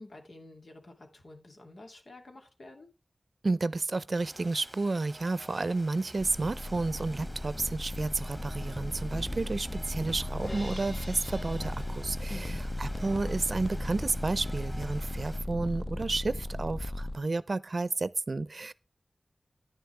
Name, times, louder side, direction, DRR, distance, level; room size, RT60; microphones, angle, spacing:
voice 1, 0.0-2.9 12.3-12.6, left 2 dB, 75° left, 2.6 m, -48 dB
voice 2, 3.4-12.4 12.8-18.7, right 3 dB, 60° right, 0.6 m, -31 dB
Rain, 4.2-15.4, right 1 dB, 5° right, 1.6 m, -46 dB
sound 1, 6.2-17.2, left 1 dB, 30° left, 0.6 m, -36 dB
Crash cymbal, 10.4-12.7, left 1 dB, 50° left, 2.9 m, -46 dB
10.5 x 10.5 x 3.3 m
wide cardioid pair, 80°, 0 cm